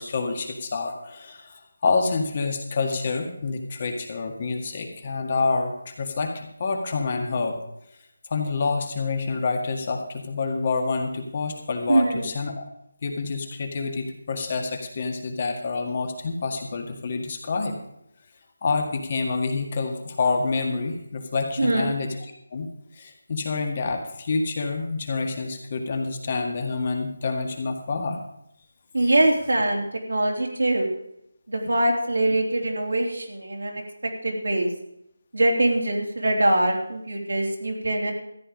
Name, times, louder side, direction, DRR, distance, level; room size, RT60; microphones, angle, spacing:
voice 1, 0.0-7.6 8.3-12.6 13.0-17.8 18.6-22.2 22.5-22.7 22.9-28.2 29.0-29.1, left 4 dB, 30° left, 3 dB, 1.8 m, -27 dB
voice 2, 11.9-12.2 21.6-21.9 28.9-30.9 31.5-33.8 34.2-34.7 35.3-38.1, right 1 dB, 85° right, 0 dB, 3.5 m, -23 dB
14.0 x 10.0 x 5.1 m, 0.77 s
figure-of-eight pair, 170°, 0 cm